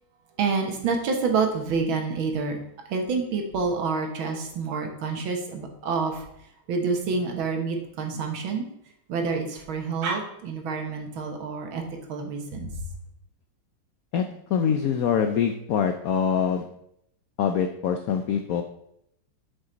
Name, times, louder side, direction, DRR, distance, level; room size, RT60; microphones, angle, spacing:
voice 1, 0.4-2.6 2.9-6.3 6.7-8.7 9.1-11.8 12.1-12.9, right 4 dB, 85° right, 3 dB, 2.0 m, -28 dB
voice 2, 14.5-16.7 17.4-18.6, left 7 dB, 80° left, 6 dB, 0.7 m, -24 dB
7.9 x 6.1 x 3.9 m, 0.76 s
omnidirectional pair, 2.2 m